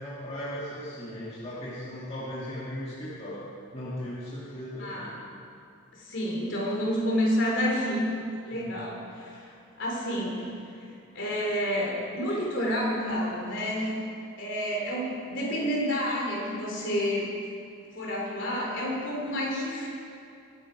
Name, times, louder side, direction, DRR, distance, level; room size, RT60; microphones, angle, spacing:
voice 1, 0.0-3.4 3.7-5.1 8.5-8.7, equal, 30° left, -8 dB, 1.9 m, -37 dB
voice 2, 4.8-5.2 5.9-8.0 8.4-10.5 10.8-14.0 14.4-17.3 17.9-19.9, equal, 55° left, -2 dB, 3.6 m, -29 dB
23.0 x 9.0 x 4.8 m, 2.5 s
head